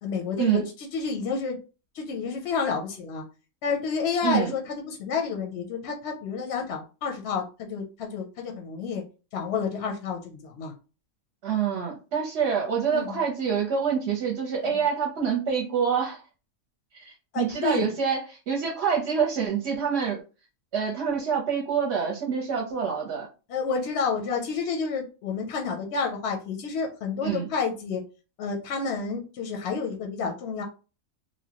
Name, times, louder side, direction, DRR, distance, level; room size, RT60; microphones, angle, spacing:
voice 1, 0.0-1.6 1.9-3.2 3.6-9.0 9.3-10.7 12.9-13.2 14.6-14.7 17.3-17.9 23.5-28.0 28.4-30.6, left 5 dB, 65° left, 2 dB, 0.7 m, -30 dB
voice 2, 11.4-16.2 16.9-18.2 18.5-20.2 20.7-23.3 27.2-27.5, right 7 dB, 60° right, -2 dB, 0.8 m, -26 dB
2.9 x 2.1 x 2.8 m, 0.33 s
omnidirectional pair, 1.5 m